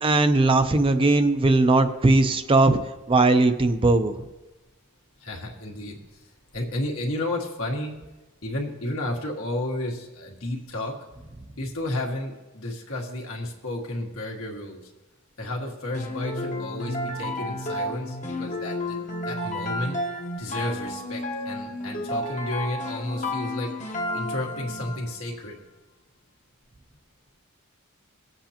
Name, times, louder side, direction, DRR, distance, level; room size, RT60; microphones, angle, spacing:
voice 1, 0.0-2.8 3.1-4.1, right 2 dB, 25° right, 8 dB, 0.5 m, -19 dB
voice 2, 5.2-6.0 6.5-7.9 8.4-10.9 11.6-14.9 15.4-19.0 19.2-20.0 20.4-23.7 24.1-25.6, left 1 dB, 75° left, 0 dB, 1.8 m, -32 dB
sound 1, 15.9-25.1, left 1 dB, 35° left, 1.0 m, -31 dB
19.0 x 8.0 x 2.9 m, 1.1 s
head